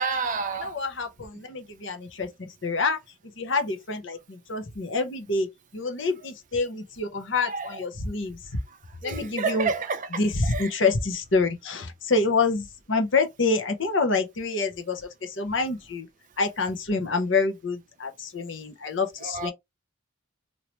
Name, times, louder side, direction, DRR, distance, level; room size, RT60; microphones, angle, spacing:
voice 1, 0.0-0.8 1.3-1.4 7.4-7.8 9.0-10.8 15.5-15.7 19.2-19.5, right 4 dB, 40° right, 0.4 m, -30 dB
voice 2, 0.6-2.3 2.6-3.0 3.4-5.5 5.7-8.4 9.0-9.7 10.2-16.1 16.4-19.5, left 3 dB, 65° left, 0.9 m, -27 dB
3.0 x 2.8 x 3.0 m
head